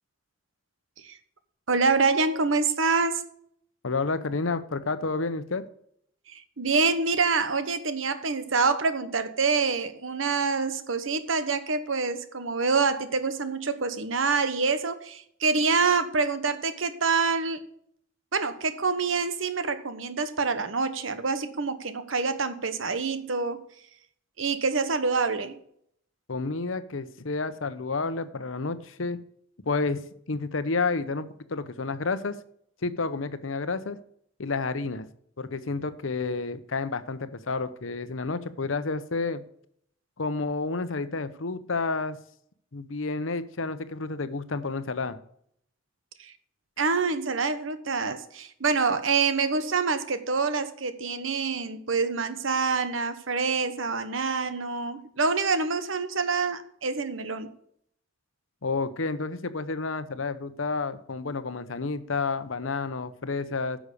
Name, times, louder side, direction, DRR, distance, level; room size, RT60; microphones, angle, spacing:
voice 1, 1.7-3.2 6.3-17.7 18.3-23.6 24.4-25.6 46.2-46.3 46.8-57.5, right 4 dB, 80° right, 1.1 m, -26 dB
voice 2, 3.8-5.6 26.3-29.2 29.7-32.3 32.8-34.0 34.4-35.1 35.4-39.4 40.2-42.2 42.7-45.2 58.6-63.8, left 3 dB, 80° left, 0.9 m, -30 dB
10.0 x 6.2 x 6.7 m
head